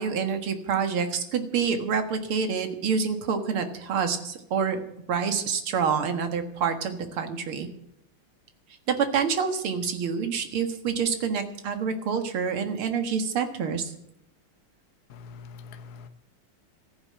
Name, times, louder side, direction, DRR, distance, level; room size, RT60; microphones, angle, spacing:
voice 1, 0.0-4.8 5.1-7.7 8.9-13.9, right 6 dB, 80° right, 7 dB, 2.5 m, -27 dB
voice 2, 15.1-16.1, left 5 dB, 55° left, 8 dB, 1.3 m, -44 dB
14.5 x 9.9 x 7.6 m, 0.77 s
omnidirectional pair, 2.3 m